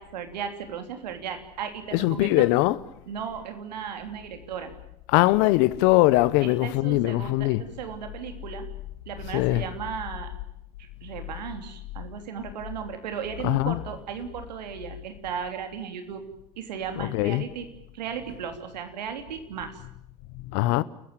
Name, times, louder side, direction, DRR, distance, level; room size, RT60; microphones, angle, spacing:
voice 1, 0.0-2.5 3.1-4.7 6.4-8.6 9.0-10.3 10.8-16.2 16.6-17.7 17.9-19.8, right 7 dB, 85° right, 3.3 m, -36 dB
voice 2, 1.9-2.8 5.1-7.6 9.3-9.6 13.4-13.8 17.0-17.4 20.5-20.8, left 18 dB, 65° left, 0.9 m, -21 dB
30.0 x 15.5 x 9.1 m
hypercardioid pair, 75°, 21 cm